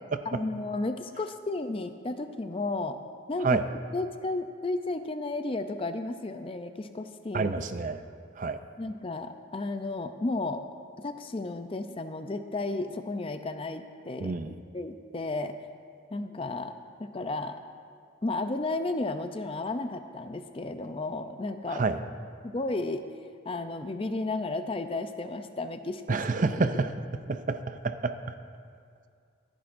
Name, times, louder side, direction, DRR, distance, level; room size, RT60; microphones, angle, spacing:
voice 1, 0.3-3.0 3.3-3.6 3.9-7.5 8.8-10.6 11.0-15.5 16.1-16.7 17.0-17.6 18.2-21.8 22.4-23.0 23.4-26.5, left 2 dB, 25° left, 8 dB, 0.4 m, -33 dB
voice 2, 7.3-8.0 8.4-8.6 14.2-14.6 21.7-22.0 26.1-26.9 27.3-28.2, right 4 dB, 40° right, 10 dB, 0.4 m, -28 dB
26.5 x 10.0 x 2.6 m, 2.3 s
head